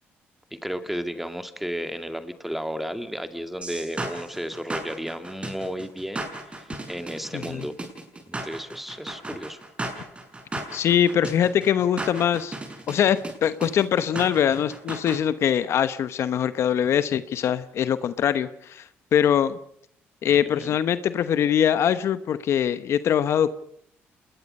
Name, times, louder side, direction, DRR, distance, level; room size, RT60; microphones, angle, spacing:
voice 1, 0.5-7.8 8.3-9.6 20.2-20.8, equal, 5° right, 9 dB, 2.2 m, -33 dB
sound 1, 3.6-15.2, right 2 dB, 25° right, 6.2 m, -35 dB
voice 2, 7.3-7.6 10.7-12.6 12.9-18.8 19.1-19.6 20.2-23.5, left 9 dB, 65° left, 13 dB, 1.0 m, -22 dB
28.0 x 20.5 x 5.5 m, 0.64 s
cardioid pair, 80°, 5 cm